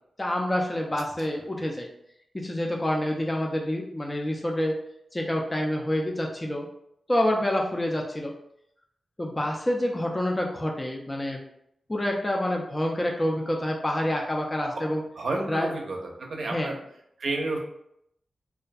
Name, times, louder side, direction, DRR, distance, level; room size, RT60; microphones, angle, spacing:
voice 1, 0.2-1.9 2.3-4.8 5.1-6.7 7.1-8.3 9.2-11.4 11.9-15.0 15.5-15.7 16.5-16.7, left 1 dB, 20° left, 0 dB, 0.3 m, -27 dB
voice 2, 15.2-16.8 17.2-17.6, right 2 dB, 70° right, 1 dB, 0.5 m, -30 dB
2.3 x 2.2 x 2.5 m, 0.76 s
wide cardioid pair, 80°, 0 cm